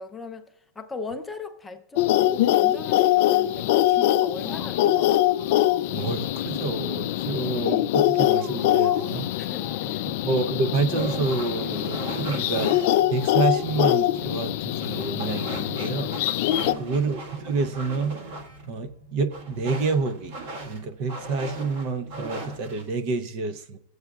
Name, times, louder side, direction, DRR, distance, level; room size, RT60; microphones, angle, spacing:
voice 1, 0.0-5.3 9.4-10.1 16.5-17.0, left 4 dB, 10° left, 0.6 m, -39 dB
sound 1, 2.0-16.7, left 14 dB, 55° left, 0.3 m, -23 dB
sound 2, 4.3-6.3 6.6-6.7 8.2-12.1 12.8-15.2 16.5-16.6, right 2 dB, 25° right, 1.1 m, -47 dB
voice 2, 5.9-9.4 10.2-16.1 16.8-18.2 18.7-23.8, right 4 dB, 40° right, 0.6 m, -28 dB
sound 3, 10.9-22.9, right 2 dB, 55° right, 1.6 m, -38 dB
22.0 x 7.9 x 2.3 m
supercardioid pair, 170°, 0 cm